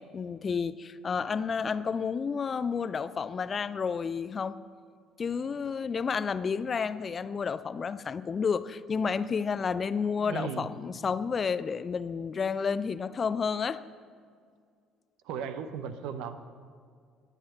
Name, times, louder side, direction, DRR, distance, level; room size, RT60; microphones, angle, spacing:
voice 1, 0.0-4.6 5.2-13.8, left 6 dB, 35° left, 15 dB, 0.4 m, -31 dB
voice 2, 10.3-10.7 15.2-16.4, right 7 dB, 65° right, 11 dB, 0.8 m, -36 dB
21.0 x 8.2 x 4.3 m, 2.1 s
figure-of-eight pair, 55°, 0 cm